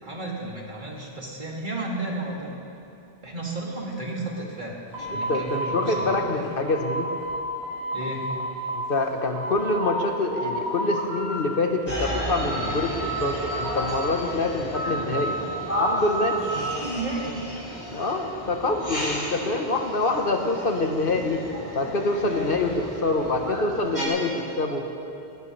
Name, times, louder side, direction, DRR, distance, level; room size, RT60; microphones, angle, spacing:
voice 1, 0.0-2.5 3.2-6.4 7.9-8.4 16.4-17.4, right 2 dB, 45° right, -3 dB, 2.6 m, -33 dB
sound 1, 4.9-7.4 7.6-8.7 9.1-10.0 10.3-11.4 11.7-12.7 13.0-14.3 14.7-16.8, right 1 dB, 85° right, 3.9 m, -31 dB
voice 2, 5.1-7.1 8.7-15.4 15.8-16.4 17.9-21.4 21.7-24.9, left 2 dB, 55° left, 3 dB, 1.2 m, -26 dB
sound 2, 11.9-24.1, equal, 15° left, 3.9 m, -33 dB
19.0 x 19.0 x 3.2 m, 2.7 s
omnidirectional pair, 1.1 m